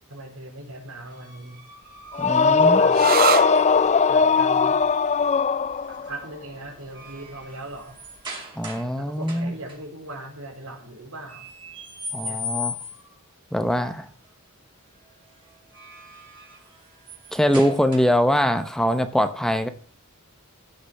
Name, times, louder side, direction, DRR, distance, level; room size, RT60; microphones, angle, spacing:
voice 1, 0.1-1.6 2.4-3.1 4.1-4.8 6.0-8.0 9.0-11.4 12.2-12.4, right 1 dB, 80° right, 2 dB, 4.3 m, -39 dB
sound 1, 1.1-4.0 5.8-6.1 6.5-8.9 9.2-9.8 11.3-13.2 15.5-18.3, left 3 dB, 25° right, 4.7 m, -38 dB
sound 2, 2.1-6.1, left 5 dB, 30° left, 0.4 m, -19 dB
voice 2, 2.2-2.8 8.6-9.5 12.1-12.7 13.5-14.1 17.3-19.7, equal, 5° left, 9 dB, 0.8 m, -22 dB
sound 3, 2.9-10.3, right 10 dB, 45° right, 0.4 m, -32 dB
15.0 x 6.6 x 5.8 m, 0.43 s
head